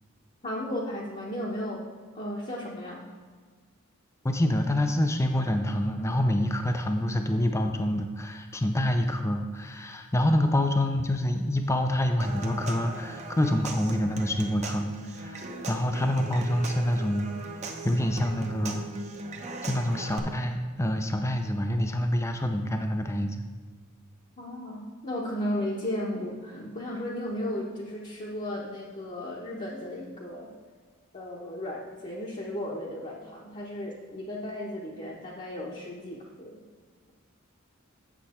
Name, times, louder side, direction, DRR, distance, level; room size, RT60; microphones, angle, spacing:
voice 1, 0.4-1.8 2.1-3.1 24.4-30.5 31.1-36.6, left 1 dB, 35° left, -5 dB, 1.0 m, -35 dB
voice 2, 4.2-17.3 17.8-18.9 19.6-23.4, left 1 dB, 15° left, 5 dB, 0.5 m, -27 dB
Human voice / Acoustic guitar / Percussion, 12.2-20.2, right 2 dB, 35° right, 0.8 m, -37 dB
8.3 x 6.7 x 4.3 m, 1.5 s
head